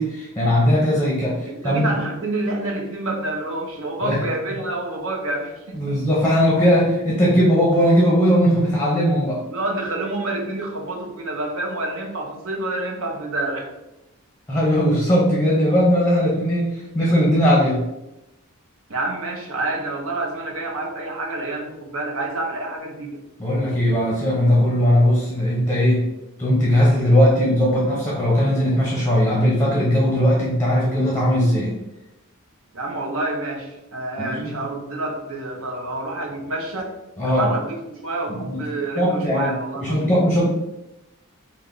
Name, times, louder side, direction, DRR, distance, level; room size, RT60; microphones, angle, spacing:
voice 1, 0.0-2.0 4.0-4.2 5.7-9.4 14.5-17.8 23.4-26.1 26.4-31.7 34.2-34.5 37.2-37.5 38.3-38.6 39.0-40.4, equal, 10° left, -4 dB, 0.6 m, -19 dB
voice 2, 1.5-5.8 9.5-13.7 18.9-23.2 32.7-36.9 37.2-40.1, right 2 dB, 70° right, 0 dB, 0.7 m, -28 dB
3.3 x 2.1 x 3.7 m, 0.94 s
head